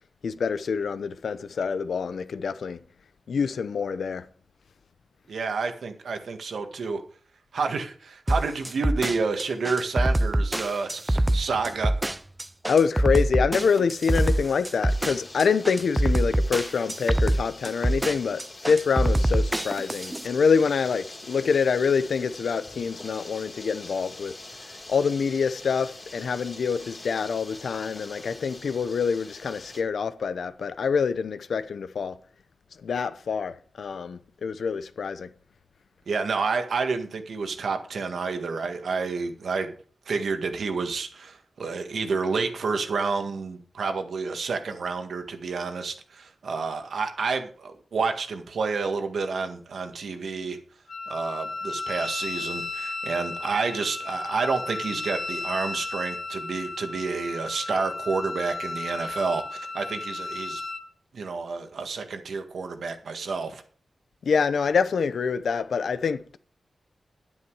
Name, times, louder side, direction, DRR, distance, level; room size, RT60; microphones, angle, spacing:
voice 1, 0.2-2.8 3.3-4.3 12.7-24.4 24.6-32.2 32.8-35.3 64.2-66.4, left 5 dB, 85° left, 0.7 m, -26 dB
voice 2, 5.3-7.0 7.5-11.9 36.1-39.7 40.1-50.6 51.1-60.6 61.1-63.6, right 4 dB, 85° right, 1.8 m, -29 dB
sound 1, 8.3-20.3, right 1 dB, 15° right, 0.5 m, -24 dB
sound 2, 14.9-29.8, left 2 dB, 30° left, 2.5 m, -44 dB
Wind instrument woodwind instrument, 50.9-60.8, left 3 dB, 55° left, 1.3 m, -34 dB
10.5 x 9.7 x 4.8 m
wide cardioid pair, 120°, 0 cm